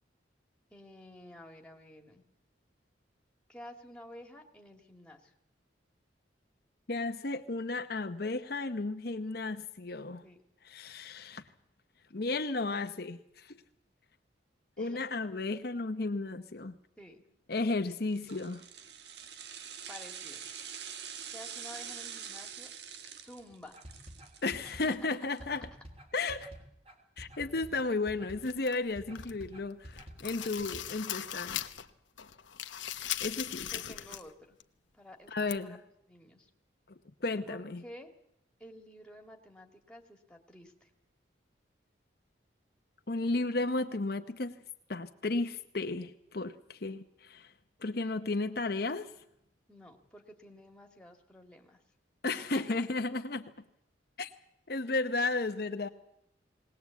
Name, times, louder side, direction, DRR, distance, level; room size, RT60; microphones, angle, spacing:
voice 1, 0.7-2.2 3.5-5.3 10.2-10.4 14.8-15.0 17.0-17.2 19.9-20.5 21.3-22.7 23.1-23.8 24.6-25.0 33.7-34.6 34.9-35.8 36.1-36.5 37.5-38.1 38.6-40.9 49.7-51.8 52.3-52.9, left 1 dB, 5° left, 3 dB, 2.1 m, -51 dB
voice 2, 6.9-10.2 10.6-11.4 12.1-13.6 14.8-16.8 17.5-18.6 24.4-25.7 26.1-26.5 27.2-31.6 33.2-33.7 35.3-35.8 37.2-37.8 43.1-44.5 44.9-47.5 47.8-49.1 52.2-53.5 54.2-54.3 54.7-55.9, left 3 dB, 55° left, 7 dB, 0.8 m, -34 dB
sound 1, 18.1-25.4 25.7-25.8, right 8 dB, 60° right, 1.3 m, -45 dB
sound 2, 23.7-30.8, equal, 30° right, 3.4 m, -49 dB
sound 3, 28.4-29.5 29.8-31.9 32.2-34.3 34.6-34.7 35.5-35.6, left 11 dB, 80° left, 1.0 m, -39 dB
20.0 x 19.0 x 8.3 m, 0.78 s
head